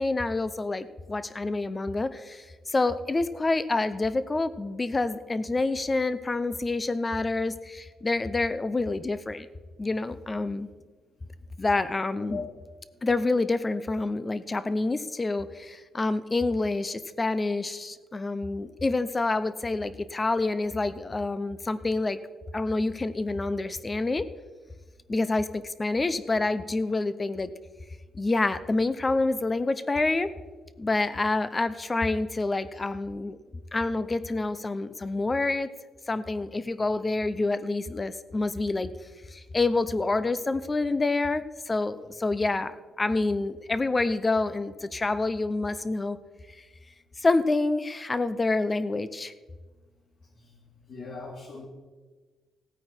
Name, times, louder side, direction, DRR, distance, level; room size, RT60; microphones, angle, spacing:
voice 1, 0.0-9.5 9.8-10.7 11.6-12.4 13.0-22.2 22.5-24.2 25.1-27.5 28.1-30.3 30.8-33.4 33.7-35.7 36.1-38.9 39.3-46.2 46.5-46.6 47.2-49.3, left 3 dB, 20° left, 14 dB, 0.7 m, -27 dB
voice 2, 50.9-51.6, left 4 dB, 60° left, -4 dB, 2.4 m, -39 dB
17.5 x 9.1 x 4.5 m, 1.3 s
cardioid pair, 140°, 0 cm